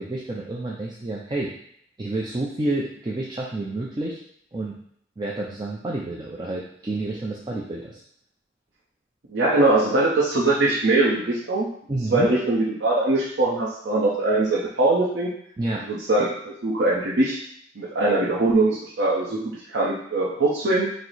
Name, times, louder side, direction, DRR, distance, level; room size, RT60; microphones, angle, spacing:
voice 1, 0.0-1.5 2.0-4.2 4.5-4.8 5.2-8.0 11.9-12.3 15.6-15.9, right 2 dB, 25° right, -4 dB, 0.4 m, -29 dB
voice 2, 9.3-11.7 12.1-15.3 15.9-17.4 17.8-20.9, right 2 dB, 80° right, -6 dB, 0.7 m, -22 dB
4.6 x 2.0 x 4.0 m, 0.66 s
head